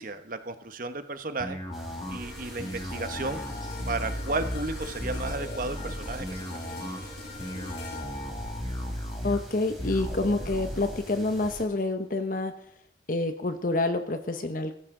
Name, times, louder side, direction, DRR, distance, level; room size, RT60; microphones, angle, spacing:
voice 1, 0.0-1.6 2.1-3.4 3.9-6.4 6.8-7.0, right 3 dB, 50° right, 9 dB, 1.2 m, -33 dB
sound 1, 1.4-11.0, equal, 30° left, 2.2 m, -36 dB
sound 2, 1.7-11.7, equal, ahead, 3.4 m, -44 dB
sound 3, 2.0-10.4 10.8-11.0, left 2 dB, 65° left, 5.2 m, -45 dB
voice 2, 9.2-12.6 13.1-14.8, left 2 dB, 50° left, 8 dB, 0.9 m, -28 dB
17.0 x 14.5 x 3.8 m, 0.73 s
head